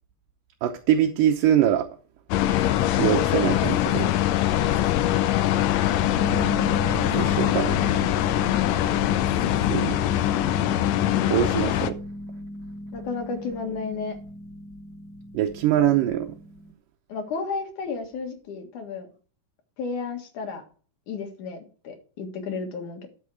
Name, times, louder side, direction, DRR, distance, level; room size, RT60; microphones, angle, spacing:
voice 1, 0.6-1.9 3.0-4.1 7.1-7.8 9.7-10.0 11.3-12.0 15.3-16.3, right 11 dB, 80° right, 2.5 m, -23 dB
sound 1, 2.3-11.9, left 12 dB, 90° left, 1.5 m, -23 dB
Harp, 6.2-16.7, left 2 dB, 35° left, 2.5 m, -35 dB
voice 2, 12.9-14.2 17.1-19.1 19.8-20.6 21.1-23.1, left 4 dB, 65° left, 3.1 m, -32 dB
12.5 x 6.5 x 4.7 m
omnidirectional pair, 3.9 m